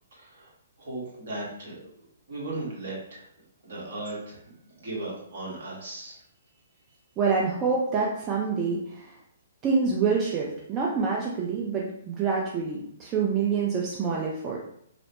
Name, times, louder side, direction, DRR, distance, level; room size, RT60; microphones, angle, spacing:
voice 1, 0.1-0.5 0.8-1.9 2.3-3.3 3.6-4.4 4.7-6.2, right 2 dB, 60° right, -5 dB, 1.2 m, -36 dB
voice 2, 7.2-9.1 9.6-14.6, right 5 dB, 25° right, -2 dB, 0.4 m, -26 dB
2.9 x 2.0 x 2.8 m, 0.73 s
figure-of-eight pair, 125°, 0 cm